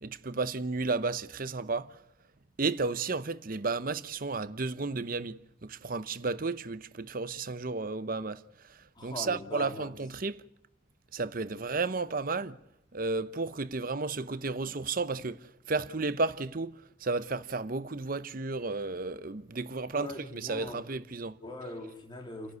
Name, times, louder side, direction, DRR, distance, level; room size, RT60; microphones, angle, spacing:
voice 1, 0.0-2.0 2.6-8.4 8.7-10.4 11.1-12.6 12.9-21.4, right 3 dB, 45° right, 0.8 m, -33 dB
voice 2, 8.9-9.9 19.8-20.9 21.4-22.5, left 1 dB, 25° left, 3.1 m, -41 dB
30.0 x 11.5 x 9.5 m
head